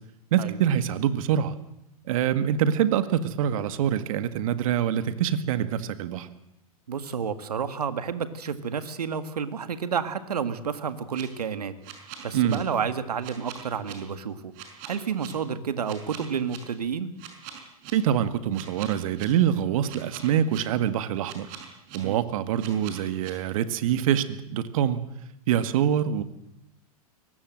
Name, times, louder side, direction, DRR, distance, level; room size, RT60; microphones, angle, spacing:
voice 1, 0.3-1.6 2.1-6.3 12.3-12.7 17.9-21.5 21.9-25.1 25.5-26.2, right 9 dB, 60° right, 11 dB, 1.9 m, -25 dB
voice 2, 6.9-14.5 14.9-17.1 22.0-22.2, right 7 dB, 85° right, 11 dB, 2.0 m, -30 dB
sound 1, 10.9-11.2 11.8-12.6 13.2-13.9 14.5-15.3 15.8-16.6 17.2-17.9 18.5-19.3 19.9-20.6 21.2-22.0 22.6-23.3, right 11 dB, 45° right, 5.6 m, -42 dB
23.0 x 19.5 x 7.8 m, 0.81 s
hypercardioid pair, 110°, 20 cm